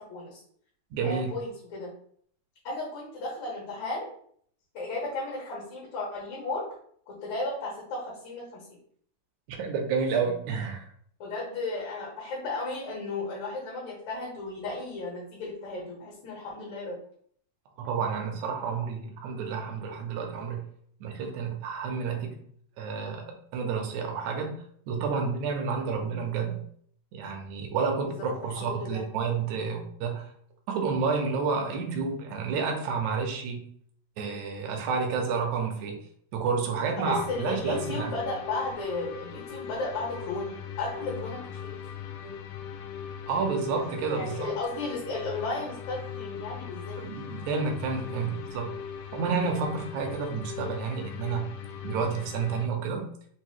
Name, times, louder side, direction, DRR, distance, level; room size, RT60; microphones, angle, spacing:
voice 1, 0.1-0.4 1.0-1.9 2.6-4.1 4.7-6.6 7.1-8.6 10.2-10.3 11.2-17.0 28.0-28.1 28.5-29.0 37.0-41.8 42.2-42.4 44.1-47.0, left 2 dB, 70° left, -5 dB, 2.5 m, -34 dB
voice 2, 0.9-1.3 9.5-10.9 17.8-20.6 21.0-22.4 22.8-24.6 24.9-26.6 27.1-30.3 30.7-33.6 34.2-36.0 36.3-38.1 43.3-44.5 47.0-48.7 49.1-51.5 51.8-53.1, right 5 dB, 75° right, 2 dB, 1.9 m, -30 dB
sound 1, 37.0-52.7, left 8 dB, 90° left, 2.2 m, -39 dB
5.4 x 2.6 x 3.0 m, 0.62 s
omnidirectional pair, 3.6 m